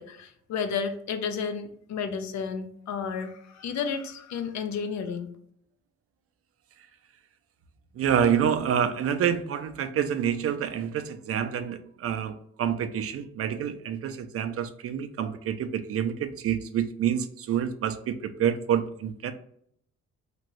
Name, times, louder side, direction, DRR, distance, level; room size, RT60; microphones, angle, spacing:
voice 1, 0.0-5.3, left 6 dB, 65° left, 8 dB, 0.6 m, -32 dB
voice 2, 8.0-12.3 12.6-18.1 18.4-19.3, right 8 dB, 50° right, 9 dB, 0.4 m, -27 dB
2.9 x 2.6 x 3.0 m, 0.66 s
cardioid pair, 90°, 30 cm